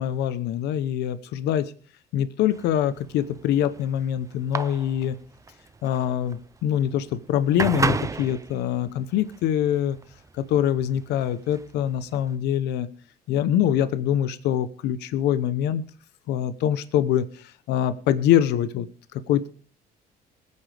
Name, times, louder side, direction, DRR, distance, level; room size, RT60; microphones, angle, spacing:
voice 1, 0.0-1.7 2.1-5.2 5.8-10.0 10.4-12.9 13.3-15.8 16.3-18.9 19.1-19.5, left 10 dB, 80° left, 13 dB, 0.9 m, -24 dB
sound 1, 2.5-12.4, right 4 dB, 20° right, 0.7 m, -33 dB
21.0 x 9.6 x 3.5 m, 0.43 s
cardioid pair, 110°, 17 cm